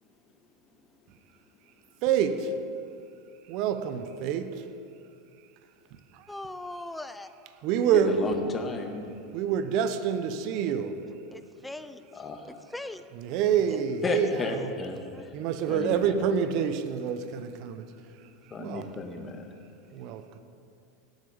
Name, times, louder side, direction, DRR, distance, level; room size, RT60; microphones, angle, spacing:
voice 1, 2.0-2.5 3.5-4.5 7.6-8.3 9.3-11.0 13.1-14.3 15.3-17.8 18.6-18.9 19.9-20.2, right 8 dB, 55° right, 0.9 m, -27 dB
voice 2, 6.3-7.3 11.3-12.0 12.5-13.0 13.7-13.8 15.1-15.2, left 2 dB, 5° left, 0.5 m, -40 dB
voice 3, 7.9-9.1 12.1-12.4 14.0-15.3 15.7-16.1 18.5-19.5, left 3 dB, 25° left, 1.7 m, -33 dB
17.5 x 8.2 x 5.1 m
hypercardioid pair, 95°, 0 cm